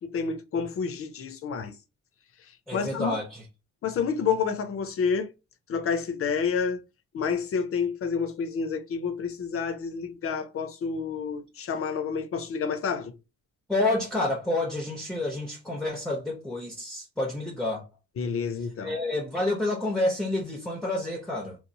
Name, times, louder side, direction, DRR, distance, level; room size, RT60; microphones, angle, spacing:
voice 1, 0.0-1.7 2.7-3.1 3.8-5.3 5.7-6.8 7.1-13.1 18.2-19.0, left 6 dB, 50° left, 0.5 m, -29 dB
voice 2, 2.7-3.4 13.7-17.9 18.8-21.6, left 2 dB, ahead, 0.6 m, -29 dB
2.9 x 2.0 x 2.6 m
cardioid pair, 90°, 30 cm